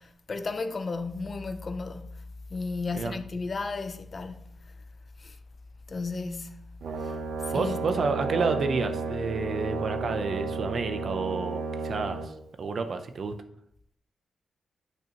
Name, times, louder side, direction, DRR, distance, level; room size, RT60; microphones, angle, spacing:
voice 1, 0.0-4.4 5.2-5.4 5.9-6.7 7.0-7.1 7.5-7.8, left 3 dB, 35° left, 0.5 m, -34 dB
Brass instrument, 6.8-12.3, right 4 dB, 80° right, 0.8 m, -32 dB
voice 2, 7.5-12.3 12.6-13.3, right 4 dB, 50° right, 0.6 m, -30 dB
9.0 x 5.8 x 3.0 m
wide cardioid pair, 155°, 0 cm